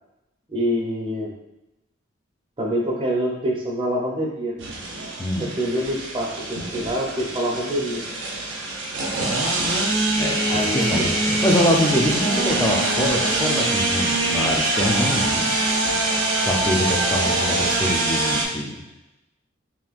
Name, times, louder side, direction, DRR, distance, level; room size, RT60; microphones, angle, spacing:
voice 1, 0.5-1.3 2.6-4.6 5.4-8.0 10.5-10.9, equal, 25° right, -2 dB, 0.7 m, -25 dB
sound 1, 4.6-18.4, right 2 dB, 75° right, 0.7 m, -24 dB
voice 2, 5.2-5.5 9.1-9.5 10.2-15.6 16.4-18.8, equal, 20° left, 0 dB, 0.4 m, -24 dB
5.8 x 2.3 x 2.4 m, 0.91 s
head